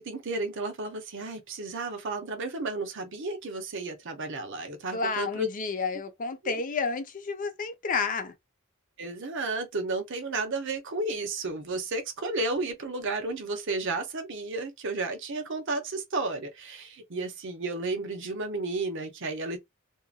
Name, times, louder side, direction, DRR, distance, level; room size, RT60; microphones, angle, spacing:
voice 1, 0.0-5.5 6.4-6.6 9.0-19.6, right 2 dB, 60° right, 0.8 m, -32 dB
voice 2, 4.9-8.3, left 4 dB, 40° left, 0.5 m, -31 dB
2.7 x 2.5 x 2.2 m
head